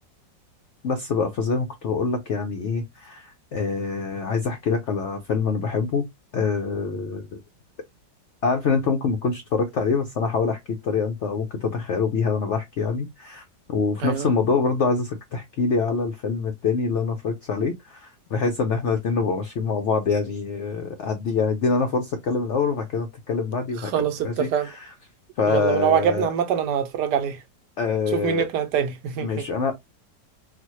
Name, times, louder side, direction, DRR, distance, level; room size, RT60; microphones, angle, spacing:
voice 1, 0.8-6.1 6.3-7.4 8.4-23.9 24.2-24.9 25.4-26.3 27.8-28.5 29.2-29.7, left 5 dB, 85° left, 0.6 m, -25 dB
voice 2, 23.8-24.7 25.5-27.4 28.1-29.5, right 8 dB, 75° right, 1.1 m, -24 dB
4.0 x 2.2 x 2.9 m
omnidirectional pair, 1.9 m